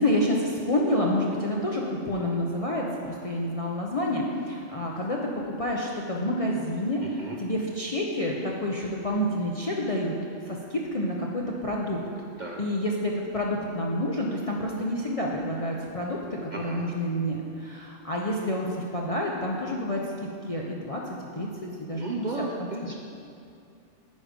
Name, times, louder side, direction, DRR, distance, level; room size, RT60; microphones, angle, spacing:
voice 1, 0.0-5.2 5.6-10.2 10.5-12.0 12.6-20.0 20.5-21.0 21.3-22.4 22.8-22.9, left 1 dB, 40° left, -2 dB, 0.5 m, -28 dB
voice 2, 7.0-7.4 12.4-12.6 16.5-16.9 22.0-23.0, right 2 dB, 50° right, 0 dB, 0.6 m, -34 dB
9.2 x 5.0 x 5.1 m, 2.4 s
omnidirectional pair, 1.3 m